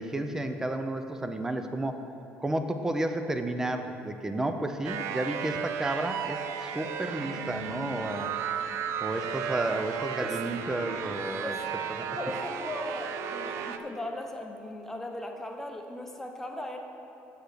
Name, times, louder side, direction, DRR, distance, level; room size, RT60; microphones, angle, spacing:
voice 1, 0.0-2.0 2.4-8.3 9.0-11.6 12.0-12.1, right 1 dB, 10° right, 7 dB, 0.6 m, -32 dB
sound 1, 4.8-13.8, right 8 dB, 75° right, 0.5 m, -34 dB
Telephone, 5.9-14.2, left 3 dB, 55° right, 1.0 m, -48 dB
voice 2, 12.2-16.8, left 1 dB, 5° left, 2 dB, 0.9 m, -38 dB
7.9 x 6.5 x 6.7 m, 2.9 s
cardioid pair, 125°, 5 cm